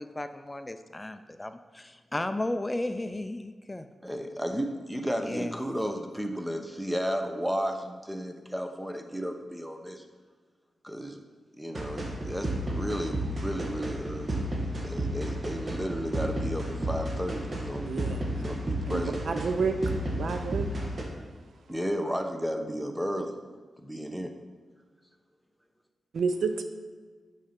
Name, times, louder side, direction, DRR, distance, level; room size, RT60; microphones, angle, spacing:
voice 1, 0.0-3.9 5.2-5.6, left 1 dB, 20° left, 9 dB, 0.5 m, -34 dB
voice 2, 4.0-10.0 10.8-11.2 11.5-14.4 14.8-17.9 18.3-19.4 21.7-23.4 23.8-24.3, equal, 5° right, 6 dB, 1.0 m, -33 dB
sound 1, 11.7-21.0, right 1 dB, 45° right, 1.8 m, -32 dB
voice 3, 17.9-18.3 18.8-19.8 20.2-20.7 26.1-26.6, right 5 dB, 75° right, 8 dB, 0.6 m, -29 dB
7.2 x 5.6 x 5.8 m, 1.4 s
cardioid pair, 55°, 0 cm